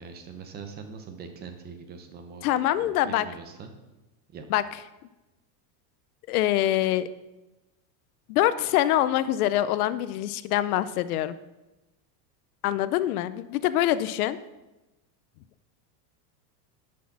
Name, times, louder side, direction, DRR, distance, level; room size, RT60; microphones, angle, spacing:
voice 1, 0.0-2.5 2.8-3.7 4.3-4.4, right 5 dB, 20° right, 6 dB, 0.8 m, -42 dB
voice 2, 2.4-3.2 4.5-4.6 6.3-7.1 8.3-11.4 12.6-14.4, left 13 dB, 65° left, 15 dB, 0.6 m, -24 dB
10.0 x 6.4 x 5.9 m, 1.0 s
supercardioid pair, 170°, 48 cm